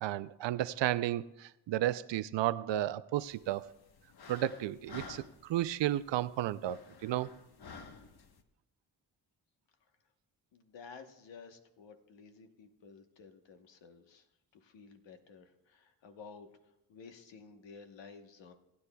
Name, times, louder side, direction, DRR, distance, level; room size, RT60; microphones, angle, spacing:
voice 1, 0.0-3.7 4.3-5.2 5.5-7.3, right 13 dB, 80° right, 0.6 m, -33 dB
Sigh (female voice), 3.2-8.4, left 4 dB, 60° left, 1.2 m, -52 dB
voice 2, 10.5-14.3 14.6-16.6 16.9-18.5, left 5 dB, 80° left, 1.2 m, -53 dB
19.5 x 9.7 x 2.3 m
cardioid pair, 65°, 43 cm